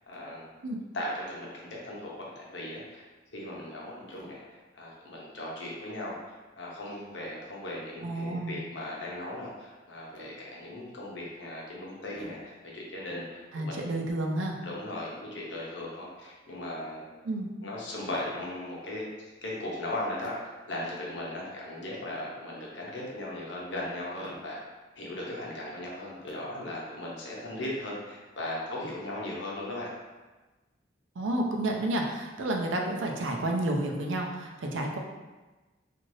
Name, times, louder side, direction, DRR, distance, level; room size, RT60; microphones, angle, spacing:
voice 1, 0.1-0.5 0.9-3.0 3.3-14.0 14.6-17.1 17.6-19.1 19.4-24.6 25.0-29.9, left 1 dB, 70° left, -4 dB, 0.8 m, -38 dB
voice 2, 8.0-8.6 13.5-14.5 17.2-17.5 31.2-35.0, right 1 dB, 90° right, 1 dB, 0.5 m, -30 dB
3.1 x 2.5 x 2.6 m, 1.2 s
head